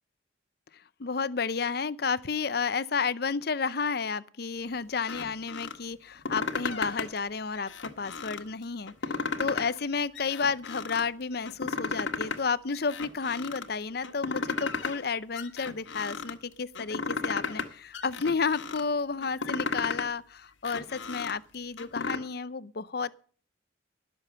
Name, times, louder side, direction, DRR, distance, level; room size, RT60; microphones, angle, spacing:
voice 1, 1.0-7.7 8.0-23.2, left 5 dB, 55° left, 0.7 m, -31 dB
sound 1, 5.0-5.7 6.1-7.2 7.6-8.5 8.9-9.8 10.1-11.0 11.5-12.4 12.7-13.7 14.0-15.0 15.3-16.3 16.7-17.7 17.9-18.8 19.2-20.1 20.5-22.2, left 4 dB, 80° left, 1.7 m, -34 dB
19.0 x 7.2 x 6.7 m
head